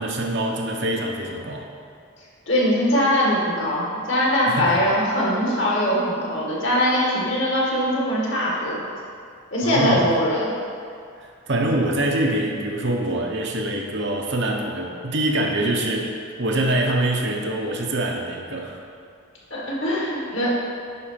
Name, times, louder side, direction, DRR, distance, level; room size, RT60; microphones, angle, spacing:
voice 1, 0.0-1.7 4.5-4.8 9.6-10.1 11.2-18.8, right 1 dB, 55° right, 0 dB, 0.9 m, -24 dB
voice 2, 2.5-8.8 9.5-10.5 19.5-20.5, equal, 60° left, -5 dB, 2.0 m, -21 dB
9.8 x 3.9 x 5.8 m, 2.3 s
head